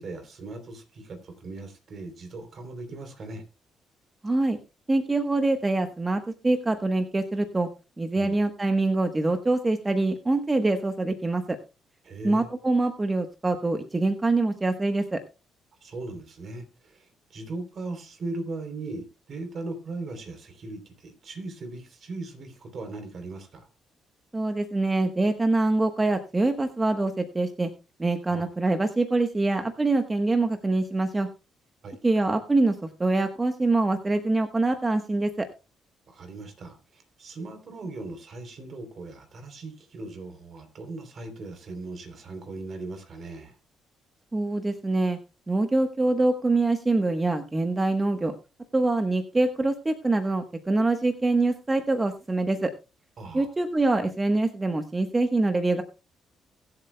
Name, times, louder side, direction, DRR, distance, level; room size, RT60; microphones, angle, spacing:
voice 1, 0.0-3.4 8.1-8.3 12.0-12.5 15.8-23.7 28.3-28.5 31.8-32.0 36.1-43.5 53.2-53.5, right 2 dB, 55° right, 7 dB, 3.3 m, -38 dB
voice 2, 4.2-4.6 4.9-7.7 8.0-11.6 12.2-15.2 24.3-27.7 28.0-31.3 32.0-35.5 44.3-45.2 45.5-48.3 48.7-52.7 53.3-55.8, right 2 dB, 20° right, 7 dB, 1.1 m, -24 dB
23.0 x 7.9 x 2.2 m, 0.29 s
cardioid pair, 90°, 0 cm